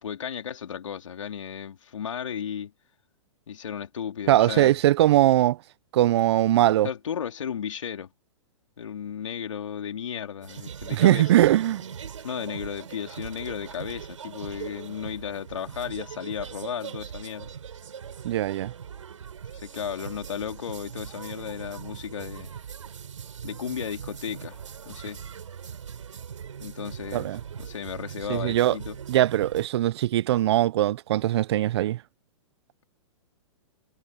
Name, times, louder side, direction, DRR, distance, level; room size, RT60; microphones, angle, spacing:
voice 1, 0.0-2.7 3.5-4.8 6.8-8.1 8.8-11.4 12.2-17.5 19.5-22.5 23.4-25.2 26.6-29.0, left 8 dB, 80° left, 3.8 m, -34 dB
voice 2, 4.3-5.6 5.9-6.9 10.9-11.8 18.2-18.7 27.1-27.4 28.3-28.8 29.1-32.0, right 14 dB, 60° right, 0.7 m, -21 dB
sound 1, 10.4-29.7, right 7 dB, 80° right, 6.4 m, -40 dB
hypercardioid pair, 125°, 16 cm